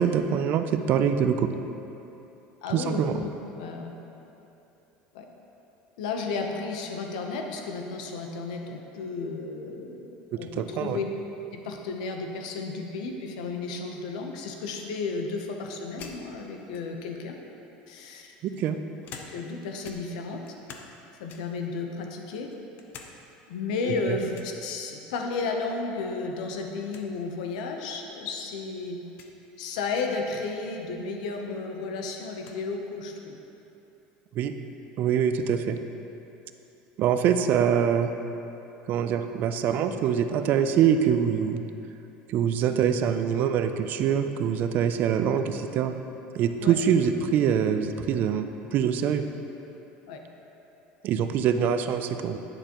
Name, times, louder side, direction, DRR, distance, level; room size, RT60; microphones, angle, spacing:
voice 1, 0.0-1.5 2.7-3.2 10.6-11.0 18.6-18.8 24.1-24.2 34.4-34.5 35.0-35.8 37.0-38.1 38.9-41.6 42.3-45.9 46.3-49.3 51.0-52.4, right 8 dB, 50° right, 8 dB, 0.4 m, -24 dB
voice 2, 2.6-3.9 5.1-5.3 6.0-11.0 11.5-17.4 17.9-18.3 19.3-20.4 21.2-22.5 23.5-29.0 29.6-33.4 45.2-45.4 46.6-46.8 50.1-50.2, left 4 dB, 90° left, 3 dB, 0.8 m, -33 dB
sound 1, 16.0-17.2 18.0-19.6 19.8-21.0 21.3-21.7 22.2-23.1 23.5-23.6 24.3-24.6 26.0-26.4 26.6-26.7 26.9-27.1 27.9-28.0 29.1-29.4 31.0-31.1 31.5-32.6, left 5 dB, 50° left, 0.7 m, -47 dB
9.7 x 6.7 x 3.0 m, 2.9 s
supercardioid pair, 130°, 4 cm